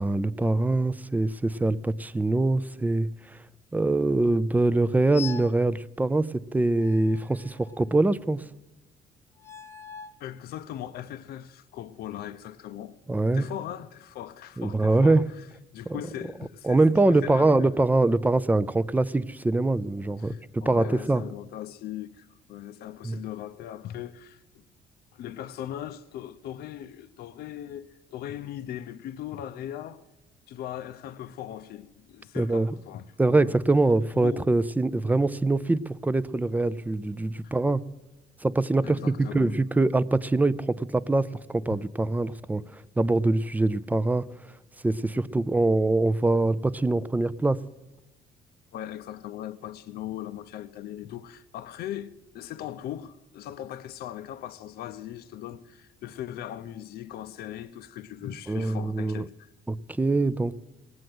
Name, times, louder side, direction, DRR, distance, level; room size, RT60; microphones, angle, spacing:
voice 1, 0.0-3.1 3.7-8.4 13.1-13.4 14.6-15.2 16.6-21.2 23.0-23.2 32.4-32.7 33.2-37.8 38.4-42.6 43.0-44.3 44.8-47.6 58.5-59.3 59.7-60.7, right 2 dB, 10° right, 0.4 m, -24 dB
sound 1, 5.1-5.6 6.8-8.0 9.4-10.2, left 7 dB, 15° left, 0.8 m, -42 dB
voice 2, 10.2-13.0 13.3-15.5 15.7-17.9 20.2-24.4 25.1-30.0 30.5-33.5 34.2-34.5 37.4-37.6 38.8-39.6 41.7-41.8 48.7-59.5, left 11 dB, 65° left, 0.6 m, -39 dB
18.5 x 7.8 x 7.8 m
cardioid pair, 110°, 17 cm